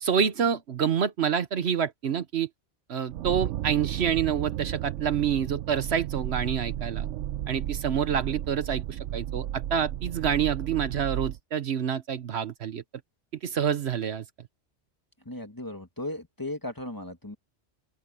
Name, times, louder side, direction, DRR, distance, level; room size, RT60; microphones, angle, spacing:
voice 1, 0.0-2.5 2.9-7.1 7.5-12.8 13.4-14.2, right 8 dB, 65° right, 1.1 m, -27 dB
sound 1, 3.1-11.4, right 12 dB, 85° right, 0.9 m, -33 dB
voice 2, 15.2-17.4, left 1 dB, 15° left, 1.6 m, -36 dB
open air
omnidirectional pair, 1.2 m